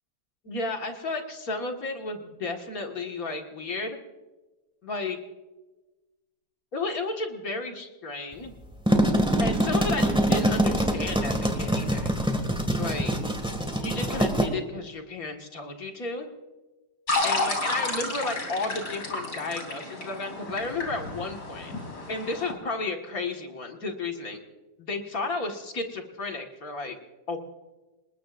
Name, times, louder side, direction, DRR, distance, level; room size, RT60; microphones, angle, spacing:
voice 1, 0.4-4.0 4.8-5.2 6.7-8.5 9.4-12.1 12.8-13.1 13.8-16.3 17.2-21.7 22.1-24.4 24.8-27.0 27.3-27.4, left 3 dB, 55° left, 3 dB, 2.2 m, -33 dB
sound 1, 8.6-14.5, right 1 dB, 5° right, 1.9 m, -24 dB
sound 2, 17.1-22.5, left 2 dB, 75° left, 4.2 m, -31 dB
28.0 x 20.5 x 2.5 m, 1.1 s
omnidirectional pair, 1.8 m